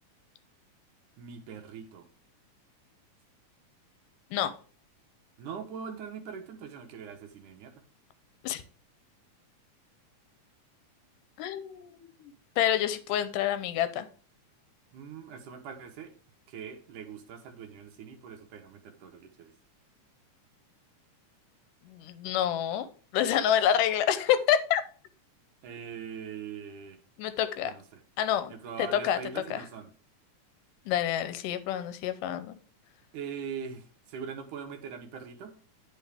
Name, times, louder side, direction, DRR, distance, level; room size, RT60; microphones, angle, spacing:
voice 1, 1.2-2.1 5.4-7.8 14.9-16.1 16.5-19.5 25.6-27.0 27.6-28.0 28.5-29.9 33.1-35.6, right 7 dB, 75° right, 5 dB, 2.5 m, -42 dB
voice 2, 11.4-12.1 12.6-14.1 21.9-24.8 27.2-27.7 28.2-28.5 28.8-29.2 29.5-29.6 30.9-32.6, left 10 dB, 85° left, 11 dB, 2.3 m, -27 dB
10.5 x 5.4 x 3.4 m, 0.43 s
omnidirectional pair, 3.7 m